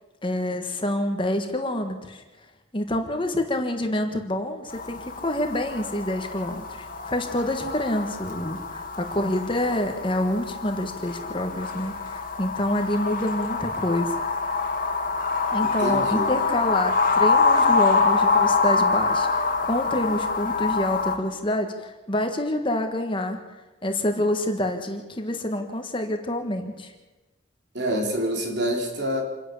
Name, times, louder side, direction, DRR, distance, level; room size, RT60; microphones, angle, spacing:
voice 1, 0.2-2.2 2.7-14.2 15.5-23.4 23.8-26.9, left 1 dB, 25° left, 5 dB, 1.6 m, -27 dB
sound 1, 4.7-21.1, left 4 dB, 40° left, 2.1 m, -25 dB
voice 2, 15.8-16.3 27.7-29.2, equal, 55° right, 2 dB, 4.1 m, -26 dB
27.5 x 11.0 x 8.4 m, 1.1 s
head